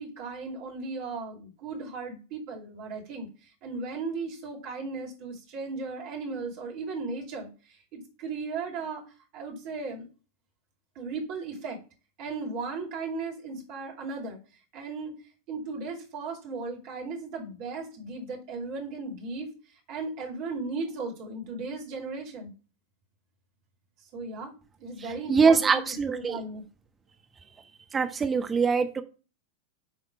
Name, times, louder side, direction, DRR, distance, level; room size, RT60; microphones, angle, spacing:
voice 1, 0.0-3.3 3.6-7.5 7.9-9.0 9.3-10.1 11.0-11.8 12.2-14.4 14.7-15.1 15.5-19.5 19.9-22.5 24.1-24.5 24.8-25.8 26.1-26.6, right 3 dB, 45° right, 1 dB, 2.6 m, -36 dB
voice 2, 25.0-26.4 27.9-29.0, right 5 dB, 20° right, 6 dB, 1.2 m, -23 dB
10.5 x 3.6 x 4.4 m, 0.34 s
figure-of-eight pair, 90°, 0 cm